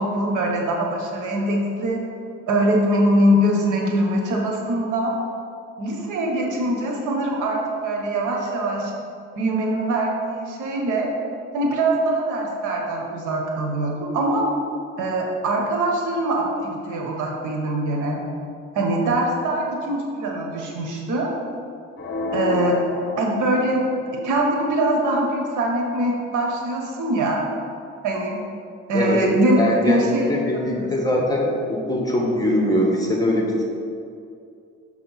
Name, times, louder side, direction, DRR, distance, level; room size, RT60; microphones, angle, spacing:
voice 1, 0.0-2.0 2.5-5.1 5.8-8.9 9.4-11.1 11.5-14.4 15.0-18.2 18.7-21.3 22.3-22.8 23.2-23.8 24.2-27.4 28.0-28.4 28.9-29.6 29.8-30.3 30.7-30.9, right 1 dB, 80° right, 0 dB, 1.2 m, -22 dB
sound 1, 22.0-24.0, left 5 dB, 40° left, 0.9 m, -30 dB
voice 2, 29.6-33.6, left 1 dB, 10° left, -1 dB, 1.2 m, -22 dB
6.3 x 3.4 x 5.5 m, 2.4 s
cardioid pair, 90°, 30 cm